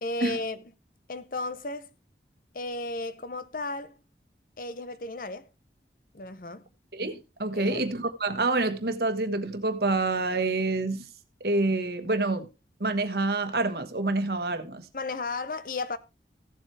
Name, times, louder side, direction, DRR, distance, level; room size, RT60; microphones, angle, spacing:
voice 1, 0.0-0.6 1.1-1.9 2.5-4.0 4.6-5.5 6.1-6.7 7.5-7.8 14.9-16.0, left 2 dB, 50° left, 0.8 m, -34 dB
voice 2, 6.9-11.0 11.4-12.5 12.8-14.8, right 2 dB, 60° right, 1.3 m, -27 dB
15.5 x 7.6 x 3.3 m
head